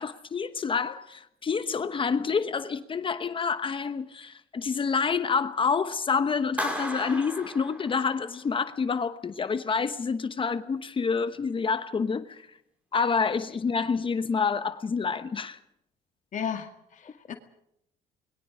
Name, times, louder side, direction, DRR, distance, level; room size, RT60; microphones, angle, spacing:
voice 1, 0.0-12.5 12.9-15.6, left 5 dB, 30° left, 1.1 m, -28 dB
Clapping, 6.6-8.4, equal, 10° right, 5.2 m, -35 dB
voice 2, 16.3-17.3, left 8 dB, 50° left, 2.2 m, -34 dB
29.0 x 22.0 x 5.1 m
cardioid pair, 110°, 17 cm